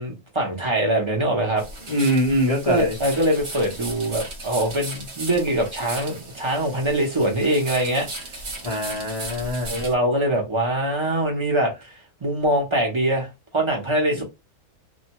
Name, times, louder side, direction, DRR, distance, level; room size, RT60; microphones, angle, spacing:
voice 1, 0.0-1.6 2.6-8.1 9.7-11.7 12.2-14.2, right 1 dB, 35° right, 0.5 m, -23 dB
sound 1, 1.6-9.9, right 2 dB, 50° right, 1.0 m, -36 dB
voice 2, 1.9-3.0 8.6-9.8 14.1-14.2, equal, 55° left, 0.4 m, -23 dB
2.6 x 2.2 x 2.8 m
omnidirectional pair, 1.7 m